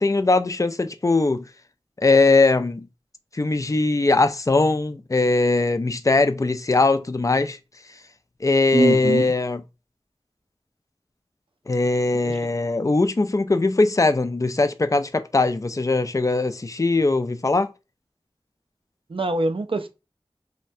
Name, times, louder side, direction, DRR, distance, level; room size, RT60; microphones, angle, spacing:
voice 1, 0.0-1.4 2.0-2.9 3.3-7.6 8.4-9.6 11.7-17.7, left 3 dB, 35° left, 0.3 m, -20 dB
voice 2, 8.7-9.2 12.2-12.4 19.1-19.9, right 3 dB, 60° right, 0.4 m, -23 dB
3.2 x 2.1 x 2.6 m
wide cardioid pair, 40°, 10 cm